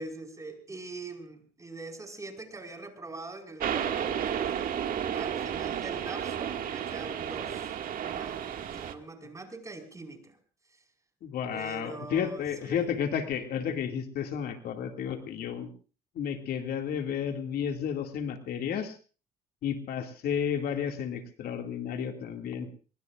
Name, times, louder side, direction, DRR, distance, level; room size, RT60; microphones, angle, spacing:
voice 1, 0.0-4.1 4.4-4.6 5.1-7.8 8.1-10.4 11.5-12.8, right 2 dB, 20° right, 5 dB, 5.0 m, -43 dB
sound 1, 3.6-8.9, right 9 dB, 55° right, 2.0 m, -32 dB
voice 2, 11.2-15.7 16.2-19.0 19.6-22.7, left 8 dB, 65° left, 5 dB, 2.3 m, -32 dB
25.0 x 23.0 x 2.5 m, 0.38 s
cardioid pair, 110°, 17 cm